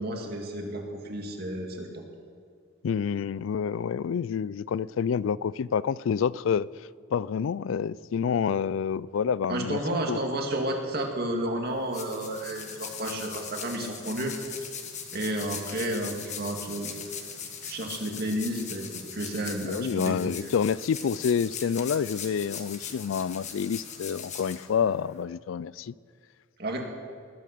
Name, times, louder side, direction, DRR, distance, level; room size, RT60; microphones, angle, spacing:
voice 1, 0.0-2.0 9.5-14.3 15.1-16.9 17.6-20.5 26.6-26.8, right 1 dB, 50° right, 2.2 m, -31 dB
voice 2, 2.8-6.7 7.1-9.8 10.1-10.2 19.6-25.9, left 7 dB, 75° left, 0.3 m, -28 dB
sound 1, 11.6-25.2, left 7 dB, 35° left, 1.4 m, -40 dB
20.0 x 9.2 x 6.7 m
head